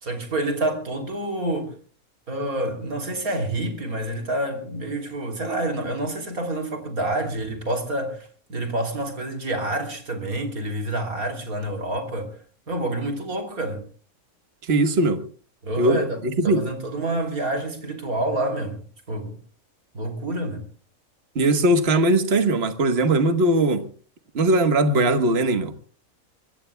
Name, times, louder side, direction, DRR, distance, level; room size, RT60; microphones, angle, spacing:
voice 1, 0.0-1.8 2.3-12.3 12.7-13.8 15.6-18.8 19.1-19.4 19.9-20.6, right 1 dB, 75° right, 3.7 m, -28 dB
voice 2, 14.6-15.2 15.8-16.6 21.3-23.8 24.3-25.7, right 2 dB, 45° right, 1.5 m, -20 dB
24.0 x 22.0 x 2.3 m
omnidirectional pair, 1.5 m